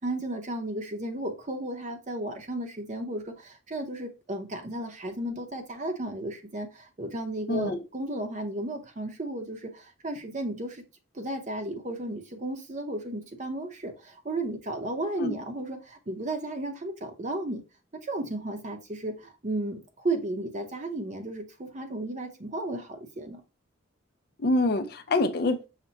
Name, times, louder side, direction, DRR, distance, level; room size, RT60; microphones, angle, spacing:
voice 1, 0.0-10.8 11.1-17.6 17.9-23.4, right 1 dB, 40° right, 0.8 m, -34 dB
voice 2, 24.4-25.7, left 2 dB, 50° left, 0.5 m, -25 dB
5.8 x 2.2 x 3.9 m
head